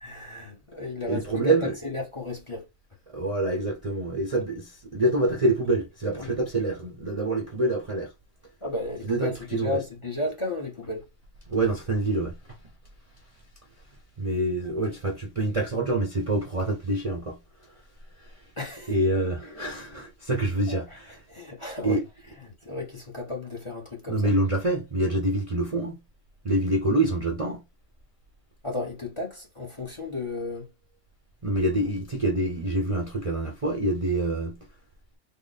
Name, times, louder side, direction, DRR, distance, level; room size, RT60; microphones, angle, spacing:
voice 1, 0.0-2.6 6.1-6.3 8.6-11.1 18.6-18.9 20.7-21.0 21.3-22.0 22.4-24.3 28.6-30.7, left 2 dB, 30° left, 0.8 m, -34 dB
voice 2, 1.1-1.7 3.1-8.1 9.0-9.8 11.5-12.6 14.2-17.7 18.2-18.5 18.9-21.2 21.8-22.0 24.1-26.0 26.4-27.6 31.4-34.7, right 2 dB, 35° right, 0.6 m, -26 dB
3.7 x 2.0 x 3.9 m
omnidirectional pair, 1.3 m